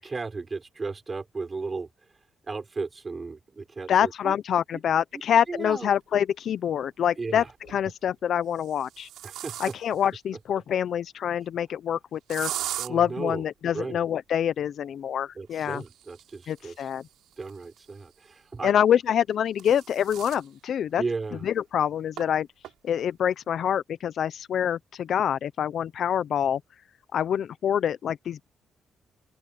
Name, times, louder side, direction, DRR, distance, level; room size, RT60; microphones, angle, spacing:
voice 1, 0.0-1.9 2.5-4.3 5.1-5.2 5.5-5.9 7.2-7.5 9.2-9.7 11.3-11.5 12.8-13.4 13.7-14.1 15.3-16.9 17.4-18.7 21.0-21.5, right 4 dB, 30° right, 6.0 m, -35 dB
voice 2, 3.9-7.4 7.7-9.1 9.6-12.5 12.9-15.8 16.5-17.0 18.6-21.0 21.4-22.5 22.8-26.6 27.1-28.5, left 9 dB, 65° left, 0.9 m, -26 dB
sound 1, 5.9-6.0 7.5-7.9 8.5-10.1 12.3-12.9 15.5-18.1 19.1-20.5 20.9-21.0 21.4-21.5 22.2-22.3 22.6-23.0, right 12 dB, 85° right, 7.3 m, -39 dB
open air
cardioid pair, 90°, 0 cm